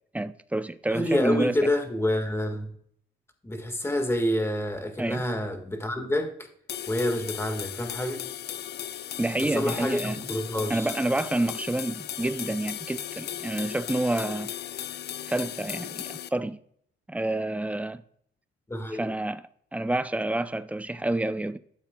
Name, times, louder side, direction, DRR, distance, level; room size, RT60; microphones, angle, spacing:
voice 1, 0.1-1.6 5.0-5.2 9.2-10.3 10.7-14.5 15.3-16.6 17.1-18.0 18.9-19.4 19.7-21.6, right 2 dB, 5° right, 0.5 m, -28 dB
voice 2, 0.9-2.7 3.4-6.3 6.9-8.2 9.5-10.9 18.7-19.1, left 1 dB, 10° left, 1.7 m, -27 dB
sound 1, 6.7-16.3, left 11 dB, 55° left, 0.4 m, -37 dB
13.0 x 7.1 x 2.3 m
cardioid pair, 90°, 20 cm